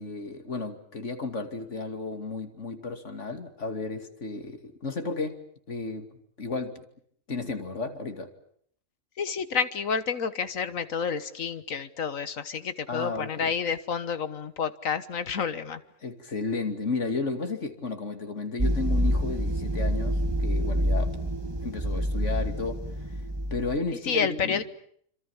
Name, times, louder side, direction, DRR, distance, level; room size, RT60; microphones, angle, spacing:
voice 1, 0.0-6.1 6.4-6.8 7.3-8.3 12.9-13.5 16.0-21.1 21.6-22.8 23.1-23.2 23.5-24.6, left 3 dB, 65° left, 7 dB, 2.9 m, -33 dB
voice 2, 9.2-15.8 24.0-24.6, left 6 dB, 90° left, 13 dB, 1.7 m, -29 dB
sound 1, 18.6-23.8, equal, 20° right, 1.6 m, -27 dB
27.5 x 26.0 x 7.3 m, 0.65 s
omnidirectional pair, 1.3 m